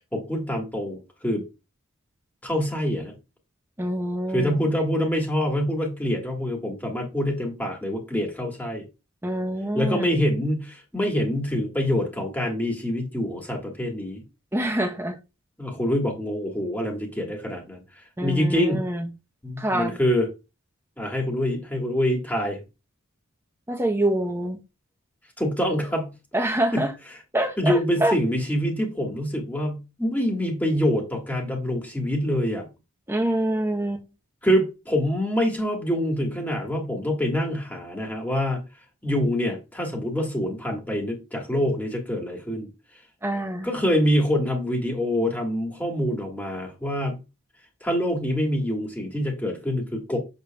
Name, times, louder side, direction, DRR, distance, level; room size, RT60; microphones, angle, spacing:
voice 1, 0.1-1.4 2.4-3.1 4.3-8.8 9.7-14.2 15.6-17.8 18.2-18.9 19.4-20.3 21.0-22.6 25.4-26.1 26.7-26.8 27.6-32.7 34.4-38.6 39.0-42.7 43.6-47.2 47.8-50.2, equal, 10° left, 1.4 m, -25 dB
voice 2, 3.8-4.7 9.2-10.2 14.5-15.2 18.2-19.1 19.6-20.0 23.7-24.6 26.3-26.9 27.3-28.2 33.1-34.0 43.2-43.7, right 1 dB, 10° right, 0.7 m, -26 dB
6.7 x 6.5 x 2.2 m
head